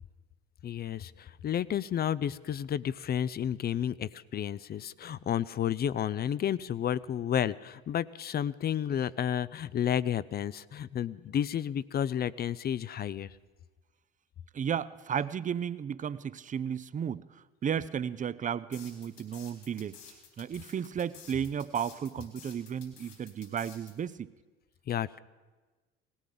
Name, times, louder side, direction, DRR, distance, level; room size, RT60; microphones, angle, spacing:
voice 1, 0.6-13.3 24.9-25.2, left 9 dB, 30° left, 19 dB, 0.4 m, -31 dB
voice 2, 14.5-17.2 17.6-20.0 20.4-24.3, right 8 dB, 25° right, 17 dB, 0.5 m, -33 dB
sound 1, 18.7-23.9, left 7 dB, 70° left, 4.0 m, -51 dB
18.5 x 17.0 x 3.9 m, 1.3 s
hypercardioid pair, 60°, 32 cm